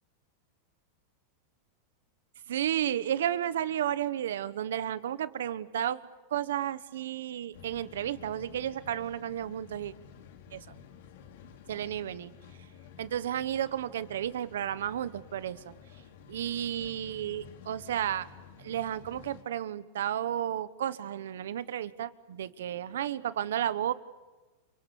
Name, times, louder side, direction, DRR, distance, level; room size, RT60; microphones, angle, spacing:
voice 1, 2.5-6.0 6.3-9.9 10.5-10.6 11.7-12.3 13.0-15.6 16.3-18.3 18.6-23.9, right 10 dB, 90° right, 15 dB, 1.3 m, -32 dB
sound 1, 7.5-19.4, left 7 dB, 70° left, 3.2 m, -52 dB
29.5 x 25.0 x 7.2 m, 1.2 s
supercardioid pair, 140°, 0 cm